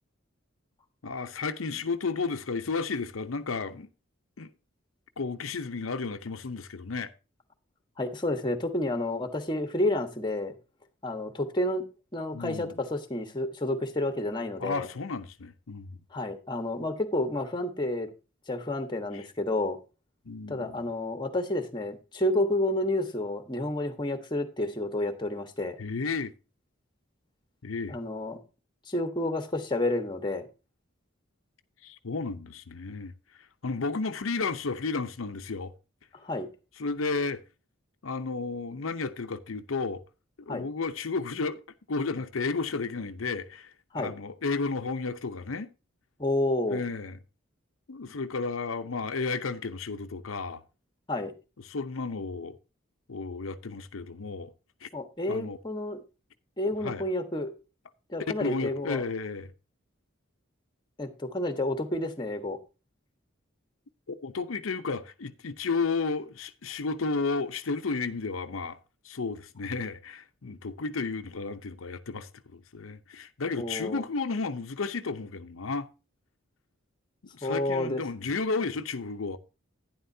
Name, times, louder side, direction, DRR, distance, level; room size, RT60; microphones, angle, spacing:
voice 1, 1.0-3.9 4.4-4.5 5.2-7.1 12.3-12.7 14.6-16.0 19.1-19.3 20.3-20.8 25.8-26.3 27.6-28.0 31.8-35.7 36.8-37.4 38.0-40.0 40.4-41.6 41.9-45.7 46.7-47.2 47.9-50.6 51.6-52.6 53.1-54.5 54.8-54.9 55.3-55.6 56.8-57.0 58.2-59.5 64.1-68.8 69.0-75.9 77.3-79.4, left 4 dB, 90° left, 0.7 m, -33 dB
voice 2, 8.0-10.5 11.0-11.9 12.1-14.9 16.1-18.1 18.5-19.8 20.5-25.8 27.9-28.4 28.9-30.5 36.2-36.5 40.5-40.6 43.9-44.1 46.2-46.8 51.1-51.3 54.9-56.0 56.6-57.5 58.1-59.0 61.0-62.6 73.6-74.0 77.4-78.0, left 1 dB, 25° left, 1.3 m, -30 dB
11.5 x 10.0 x 2.7 m
head